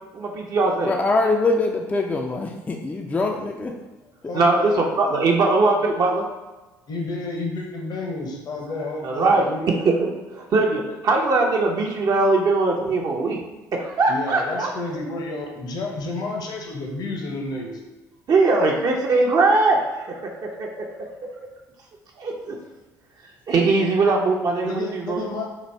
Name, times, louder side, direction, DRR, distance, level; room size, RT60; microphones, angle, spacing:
voice 1, 0.1-0.9 4.3-6.2 9.0-9.5 9.8-13.4 13.7-14.7 18.3-20.9 22.2-22.6 23.5-25.2, right 3 dB, 40° right, 0 dB, 0.6 m, -21 dB
voice 2, 0.9-3.7, left 3 dB, 15° left, 1 dB, 0.4 m, -23 dB
voice 3, 4.2-4.8 6.9-9.7 14.1-17.8 24.6-25.5, left 2 dB, 45° left, 0 dB, 0.8 m, -30 dB
4.1 x 2.6 x 3.2 m, 1.1 s
figure-of-eight pair, 55°, 10 cm